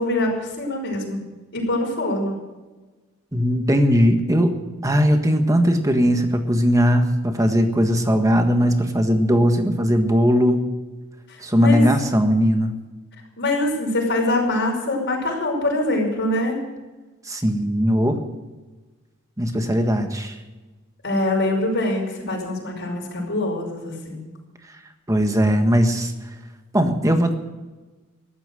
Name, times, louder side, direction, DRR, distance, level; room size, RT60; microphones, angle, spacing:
voice 1, 0.0-2.5 11.3-11.8 13.4-16.6 21.0-24.2, left 1 dB, 55° left, 0 dB, 5.5 m, -24 dB
voice 2, 3.3-4.6 4.8-10.7 11.4-12.7 17.3-18.2 19.4-20.3 25.1-26.1 26.7-27.3, equal, 15° right, 6 dB, 1.6 m, -19 dB
14.0 x 12.0 x 7.8 m, 1.2 s
head